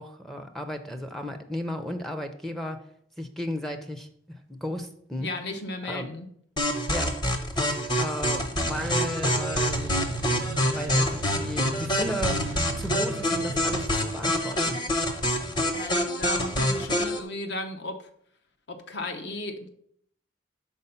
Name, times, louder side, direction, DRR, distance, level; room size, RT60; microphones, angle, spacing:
voice 1, 0.0-2.8 3.2-5.3 5.8-6.1 6.9-7.2 7.5-10.2 10.7-12.4 12.8-14.8, equal, ahead, 5 dB, 0.4 m, -34 dB
voice 2, 5.2-6.3 15.7-18.1 18.7-19.7, left 2 dB, 60° left, 7 dB, 0.8 m, -35 dB
sound 1, 6.6-17.2, left 1 dB, 25° left, 0.8 m, -26 dB
sound 2, 8.6-13.9, right 3 dB, 65° right, 0.5 m, -37 dB
5.4 x 4.4 x 5.5 m, 0.66 s
head